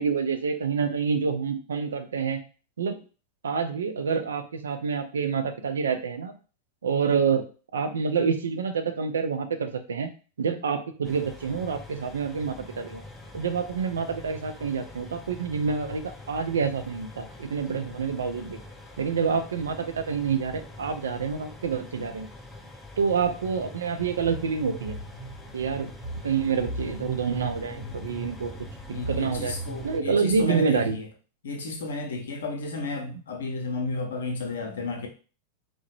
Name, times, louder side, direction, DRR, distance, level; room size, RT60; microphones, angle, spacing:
voice 1, 0.0-2.4 2.8-3.0 3.4-6.3 6.8-7.4 7.7-10.1 10.4-13.0 13.3-16.0 16.3-18.6 19.0-22.3 23.0-25.0 25.5-25.9 26.2-28.6 29.1-29.6 29.8-31.0, right 5 dB, 70° right, 0.4 m, -27 dB
sound 1, 11.0-30.0, left 2 dB, 10° left, 0.5 m, -44 dB
sound 2, 24.0-30.9, right 2 dB, 50° right, 0.9 m, -39 dB
voice 2, 28.9-31.1 31.4-35.1, left 3 dB, 65° left, 0.6 m, -32 dB
2.8 x 2.1 x 3.0 m
figure-of-eight pair, 90°, 0 cm